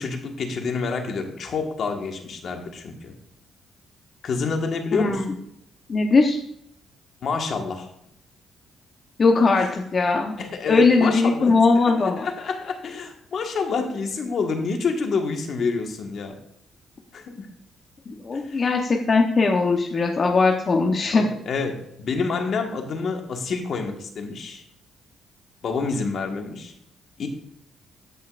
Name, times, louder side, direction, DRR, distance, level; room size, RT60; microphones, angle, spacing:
voice 1, 0.0-3.1 4.2-5.2 7.2-7.9 9.6-9.7 10.4-11.6 12.0-16.3 17.1-17.5 18.3-18.6 21.1-24.6 25.6-26.7 27.2-27.3, left 4 dB, 60° left, 4 dB, 1.6 m, -28 dB
voice 2, 4.9-5.2 5.9-6.4 9.2-10.4 10.7-12.2 18.2-21.2, left 4 dB, 40° left, 2 dB, 1.0 m, -19 dB
15.0 x 5.6 x 2.5 m, 0.74 s
cardioid pair, 90°, 0 cm